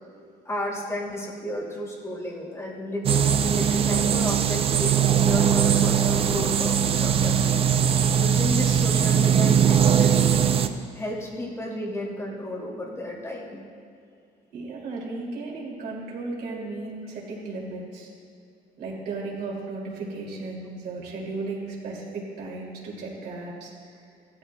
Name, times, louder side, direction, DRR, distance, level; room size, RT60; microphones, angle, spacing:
voice 1, 0.4-7.4 8.1-10.3 10.9-13.6, left 1 dB, 20° left, -4 dB, 2.4 m, -32 dB
sound 1, 3.0-10.7, right 8 dB, 35° right, 0.4 m, -20 dB
voice 2, 14.5-18.1 18.8-23.7, right 3 dB, 75° right, -4 dB, 2.6 m, -35 dB
16.0 x 12.5 x 2.2 m, 2.4 s
cardioid pair, 160°, 16 cm